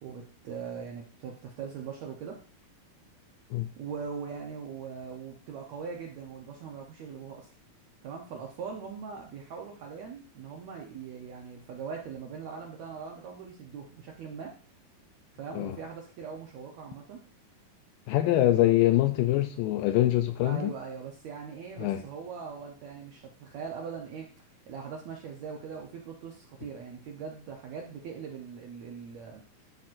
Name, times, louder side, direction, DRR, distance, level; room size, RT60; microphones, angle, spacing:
voice 1, 0.0-2.4 3.8-7.5 8.0-14.6 15.3-17.2 20.4-24.3 24.7-29.4, right 6 dB, 75° right, 1.7 m, -41 dB
voice 2, 18.1-20.7 21.8-22.0, left 14 dB, 80° left, 2.0 m, -24 dB
12.0 x 6.0 x 2.5 m
omnidirectional pair, 4.2 m